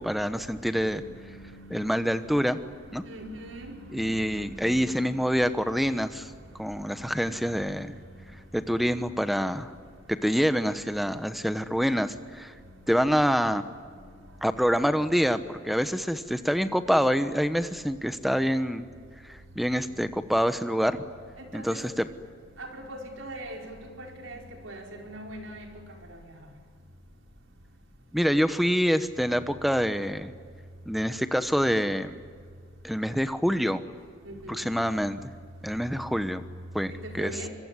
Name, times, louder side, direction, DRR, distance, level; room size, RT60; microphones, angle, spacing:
voice 1, 0.0-1.0 1.7-2.6 2.9-3.0 3.9-6.3 6.6-7.9 8.5-9.7 10.1-12.5 12.9-13.6 14.4-18.9 19.3-21.0 21.5-22.0 28.1-30.3 30.9-32.2 32.8-33.8 34.5-35.2 35.6-36.4 36.7-37.3, equal, ahead, 10 dB, 1.0 m, -26 dB
voice 2, 0.5-2.7 3.0-5.4 6.6-7.3 19.7-20.3 21.4-21.8 22.6-25.7 26.1-26.2 34.2-34.7 36.9-37.5, right 1 dB, 85° right, 2 dB, 5.1 m, -42 dB
25.0 x 23.5 x 9.9 m, 2.1 s
head